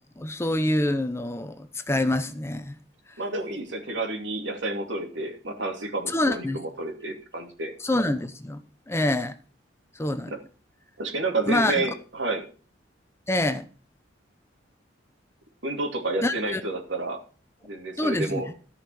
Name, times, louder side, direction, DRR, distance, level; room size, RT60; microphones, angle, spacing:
voice 1, 0.2-2.8 6.1-6.6 7.8-9.3 10.0-10.3 11.5-11.9 13.3-13.6 16.2-16.6 18.0-18.4, left 1 dB, 15° left, 0.7 m, -26 dB
voice 2, 3.2-7.7 10.3-10.4 11.0-12.5 15.6-17.2 17.6-18.5, right 2 dB, 75° right, 2.7 m, -30 dB
14.0 x 5.7 x 7.0 m
head